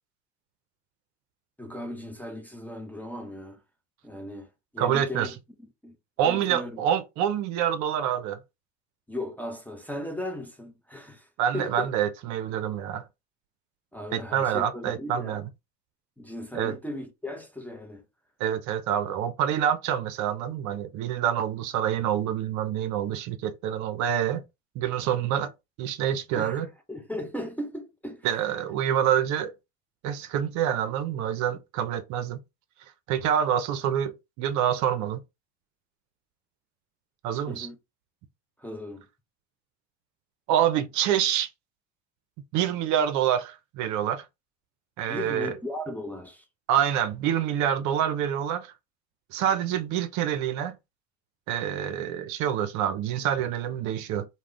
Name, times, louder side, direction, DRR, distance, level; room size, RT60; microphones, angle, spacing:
voice 1, 1.6-3.6 4.0-4.5 4.7-5.3 5.8-6.0 6.2-6.8 9.1-11.3 11.5-11.9 13.9-15.4 16.2-18.0 26.4-28.4 37.5-37.8 38.6-39.0 45.1-46.4, left 1 dB, 5° left, 0.5 m, -37 dB
voice 2, 4.8-5.3 6.2-8.4 11.4-13.0 14.1-15.5 16.5-16.8 18.4-24.4 24.8-25.5 25.8-26.7 28.2-29.5 30.0-32.4 33.1-35.2 37.2-37.7 40.5-41.5 42.5-44.2 45.0-45.5 46.7-48.7 49.3-50.7 51.5-54.3, right 10 dB, 55° right, 0.5 m, -26 dB
2.4 x 2.1 x 3.5 m
hypercardioid pair, 75°, 35 cm